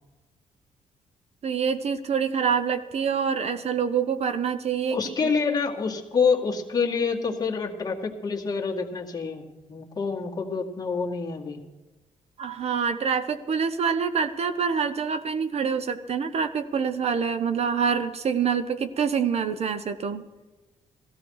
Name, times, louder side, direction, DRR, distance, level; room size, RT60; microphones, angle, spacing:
voice 1, 1.4-5.0 12.4-20.2, right 6 dB, 50° right, 11 dB, 0.8 m, -26 dB
voice 2, 4.9-11.6, left 5 dB, 30° left, -1 dB, 2.0 m, -27 dB
15.5 x 14.5 x 4.8 m, 1.2 s
cardioid pair, 125°, 13 cm